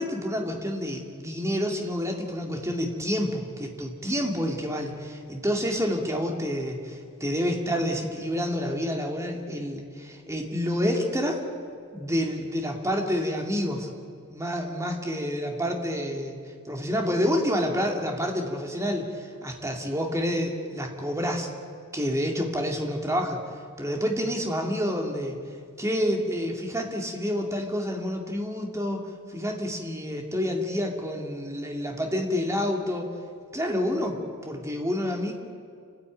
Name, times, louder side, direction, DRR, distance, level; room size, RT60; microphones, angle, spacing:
voice 1, 0.0-11.4 11.9-13.9 14.3-16.4 16.7-21.5 21.9-23.4 23.8-25.4 25.8-33.1 33.5-35.3, equal, 15° right, 1 dB, 2.3 m, -28 dB
29.0 x 10.5 x 9.0 m, 2.2 s
head